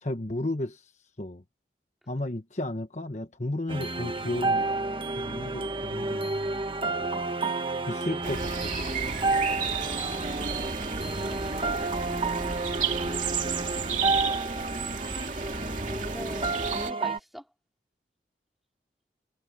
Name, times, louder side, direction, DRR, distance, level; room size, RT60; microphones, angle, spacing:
voice 1, 0.0-0.9 1.2-1.4 2.1-4.6 5.1-6.3 7.9-8.8, left 1 dB, 40° left, 1.2 m, -33 dB
sound 1, 3.7-17.2, right 3 dB, 30° right, 1.4 m, -31 dB
sound 2, 8.2-16.9, right 5 dB, 45° right, 2.8 m, -32 dB
voice 2, 14.3-15.2 15.9-17.5, equal, ahead, 3.5 m, -46 dB
head